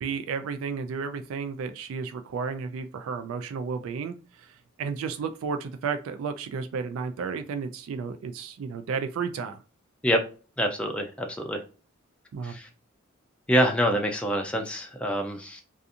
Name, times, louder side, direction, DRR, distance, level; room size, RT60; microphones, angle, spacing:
voice 1, 0.0-9.6 12.3-12.6, right 5 dB, 75° right, 9 dB, 0.3 m, -33 dB
voice 2, 10.6-11.6 12.4-12.7 13.5-15.6, equal, 5° left, 2 dB, 0.3 m, -26 dB
2.4 x 2.4 x 2.7 m, 0.35 s
head